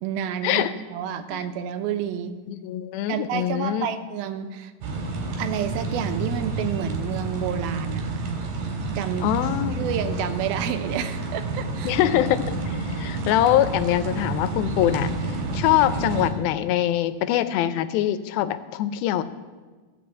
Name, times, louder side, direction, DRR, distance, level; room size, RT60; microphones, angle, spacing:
voice 1, 0.0-2.3 3.1-4.7 5.4-8.2 9.0-9.3 9.8-11.9, right 9 dB, 90° right, 9 dB, 2.6 m, -29 dB
voice 2, 2.5-3.9 9.2-9.9 11.9-15.1 15.5-19.2, left 12 dB, 90° left, 12 dB, 2.5 m, -23 dB
sound 1, 4.8-16.3, right 3 dB, 65° right, 3.5 m, -29 dB
16.0 x 5.7 x 8.1 m, 1.4 s
omnidirectional pair, 4.2 m